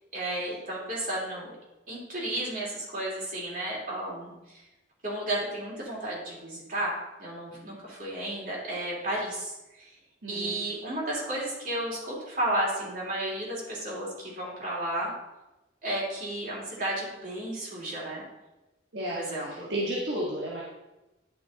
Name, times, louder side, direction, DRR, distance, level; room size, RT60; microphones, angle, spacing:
voice 1, 0.1-1.6 1.9-4.3 5.0-9.5 10.3-15.1 15.8-18.2 19.1-19.7, right 1 dB, 45° right, -5 dB, 3.2 m, -33 dB
voice 2, 10.2-10.6 18.9-20.6, right 1 dB, 65° right, -5 dB, 1.6 m, -32 dB
11.0 x 5.8 x 4.1 m, 1.0 s
head